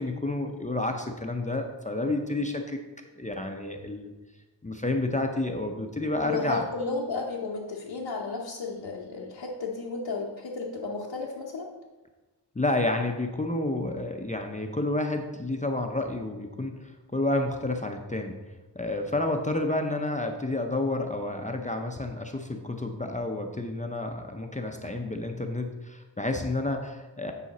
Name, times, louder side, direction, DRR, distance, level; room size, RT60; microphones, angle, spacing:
voice 1, 0.0-2.8 3.2-4.1 4.6-6.6 12.6-18.4 18.7-27.3, left 2 dB, 20° left, 3 dB, 0.5 m, -30 dB
voice 2, 6.2-11.7 24.8-24.9, left 4 dB, 85° left, -3 dB, 0.9 m, -33 dB
9.3 x 4.9 x 4.1 m, 1.2 s
wide cardioid pair, 105°, 42 cm